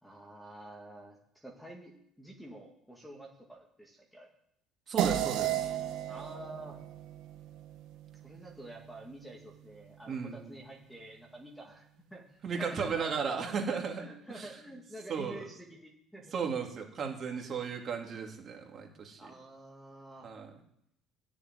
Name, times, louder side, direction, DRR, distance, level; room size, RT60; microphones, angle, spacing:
voice 1, 0.0-4.3 6.1-6.8 8.2-13.2 13.7-16.3 18.2-18.3 19.2-20.3, right 1 dB, ahead, 0 dB, 1.9 m, -49 dB
voice 2, 4.9-5.7 10.1-10.5 12.4-14.0 14.3-14.5 15.1-15.5 16.3-19.2 20.2-20.5, right 6 dB, 30° right, 2 dB, 2.5 m, -35 dB
sound 1, 5.0-9.7, right 11 dB, 70° right, 1.7 m, -35 dB
13.5 x 7.2 x 9.7 m, 0.75 s
cardioid pair, 170°, 0 cm